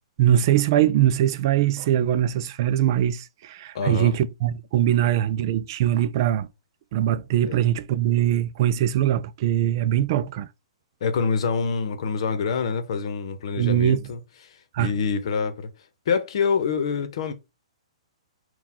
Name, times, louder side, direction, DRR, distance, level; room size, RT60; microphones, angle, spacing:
voice 1, 0.2-6.5 6.9-10.5 13.6-14.0 14.7-14.9, right 11 dB, 40° right, 0.4 m, -22 dB
voice 2, 3.7-4.2 7.5-7.6 11.0-14.2 14.8-15.7 16.1-17.3, left 5 dB, 55° left, 0.9 m, -26 dB
3.9 x 2.3 x 4.3 m
hypercardioid pair, 155°, 3 cm